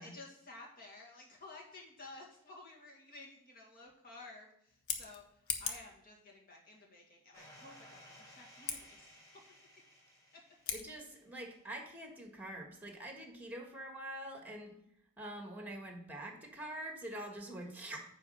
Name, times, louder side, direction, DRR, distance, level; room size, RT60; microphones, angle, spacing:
voice 1, 0.0-5.2 5.6-9.2, left 2 dB, 45° left, -1 dB, 2.3 m, -53 dB
Scissors, 4.7-5.9 8.6-8.8 10.6-10.9, left 7 dB, 75° left, 1.1 m, -39 dB
sound 1, 7.3-11.4, equal, 15° left, 1.8 m, -58 dB
voice 2, 10.7-14.7 15.2-18.0, right 1 dB, 10° right, 2 dB, 1.6 m, -45 dB
9.6 x 4.2 x 6.5 m, 0.75 s
head